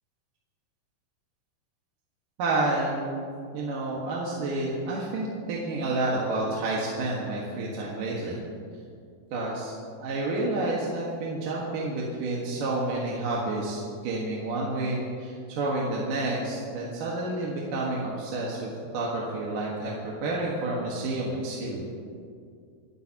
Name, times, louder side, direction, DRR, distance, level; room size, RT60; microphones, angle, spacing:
voice 1, 2.4-3.3 3.5-8.4 9.3-9.7 10.0-21.8, right 2 dB, 65° right, -4 dB, 3.1 m, -29 dB
26.5 x 13.0 x 2.9 m, 2.4 s
omnidirectional pair, 4.3 m